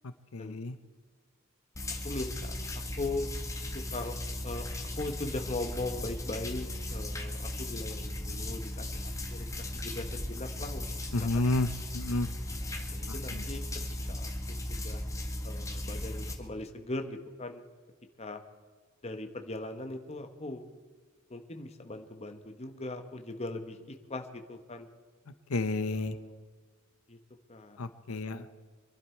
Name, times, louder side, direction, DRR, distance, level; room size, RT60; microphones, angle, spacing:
voice 1, 0.3-0.8 11.1-11.7 11.9-12.3 13.1-13.4 25.5-26.2 27.8-28.4, left 2 dB, 85° left, 11 dB, 0.8 m, -30 dB
sound 1, 1.7-16.3, left 1 dB, 15° left, 1.7 m, -37 dB
voice 2, 2.0-2.6 3.0-3.3 3.7-10.9 11.2-11.3 12.6-13.6 14.1-15.0 15.4-17.6 18.2-18.4 19.0-20.7 21.3-24.9 25.9-26.4 27.1-27.2 27.5-27.8 28.1-28.5, left 2 dB, 30° left, 6 dB, 1.3 m, -40 dB
25.5 x 11.5 x 4.6 m, 1.5 s
head